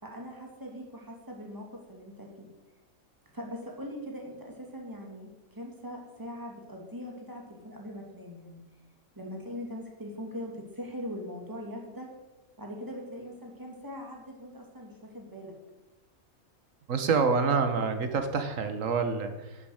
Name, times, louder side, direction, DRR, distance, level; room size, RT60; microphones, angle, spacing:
voice 1, 0.0-2.5 3.3-8.6 9.1-12.1 12.6-15.5, equal, 15° right, 0 dB, 2.6 m, -41 dB
voice 2, 16.9-19.7, right 5 dB, 65° right, 8 dB, 1.7 m, -27 dB
12.0 x 7.9 x 8.0 m, 1.1 s
omnidirectional pair, 1.5 m